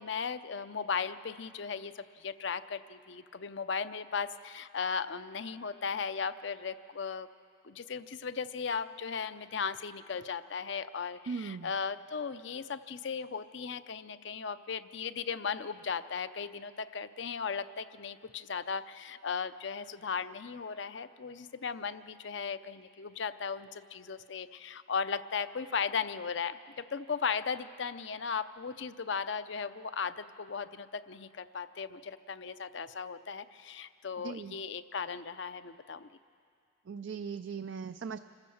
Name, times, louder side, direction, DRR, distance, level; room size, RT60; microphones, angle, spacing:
voice 1, 0.0-7.3 7.6-36.1, left 6 dB, 60° left, 12 dB, 0.6 m, -37 dB
voice 2, 11.3-11.7 34.2-34.5 36.9-38.2, right 5 dB, 65° right, 10 dB, 0.4 m, -38 dB
26.5 x 15.0 x 7.1 m, 2.4 s
head